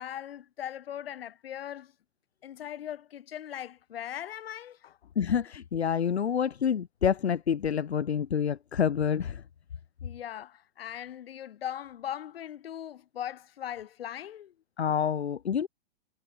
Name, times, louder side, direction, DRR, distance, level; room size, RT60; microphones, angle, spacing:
voice 1, 0.0-1.9 2.4-5.1 10.0-14.5, left 10 dB, 65° left, 4.4 m, -39 dB
voice 2, 5.2-9.4 14.8-15.7, left 8 dB, 85° left, 1.2 m, -27 dB
hypercardioid pair, 125°, 32 cm